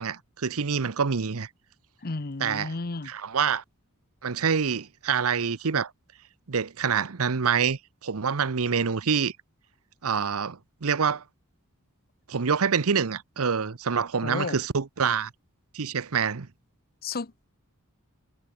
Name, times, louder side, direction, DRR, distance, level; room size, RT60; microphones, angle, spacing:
voice 1, 0.0-1.5 2.4-2.7 3.1-3.6 4.2-5.9 6.5-9.3 10.0-11.2 12.3-15.3 15.7-16.5, right 6 dB, 70° right, 0.8 m, -26 dB
voice 2, 2.0-3.1 14.2-14.6 17.0-17.5, left 3 dB, 45° left, 0.9 m, -33 dB
head